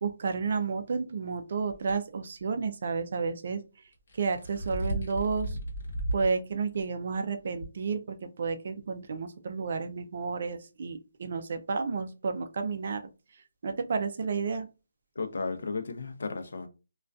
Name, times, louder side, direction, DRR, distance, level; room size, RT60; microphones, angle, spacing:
voice 1, 0.0-3.6 4.1-5.6 6.1-13.1 13.6-14.7, right 5 dB, 45° right, 0.3 m, -31 dB
sound 1, 1.7-1.9 3.9-6.3 6.7-6.8 7.6-7.7, right 1 dB, 50° left, 1.0 m, -34 dB
voice 2, 15.2-16.7, left 4 dB, 65° left, 0.5 m, -34 dB
2.4 x 2.2 x 2.3 m
hypercardioid pair, 170°, 0 cm